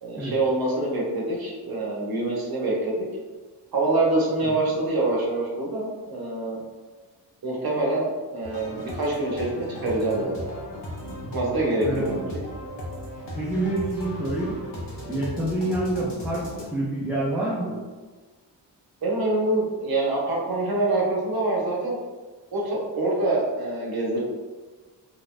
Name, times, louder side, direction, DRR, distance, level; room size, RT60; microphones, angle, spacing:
voice 1, 0.0-3.1 3.7-6.6 7.4-10.5 11.3-12.4 19.0-22.0 22.5-24.2, right 2 dB, 55° right, -3 dB, 0.8 m, -25 dB
sound 1, 8.4-16.7, equal, 75° left, 0.9 m, -36 dB
voice 2, 11.8-12.4 13.4-14.5 15.1-17.8, right 1 dB, 5° right, -8 dB, 0.4 m, -27 dB
2.5 x 2.2 x 3.1 m, 1.4 s
wide cardioid pair, 115°, 42 cm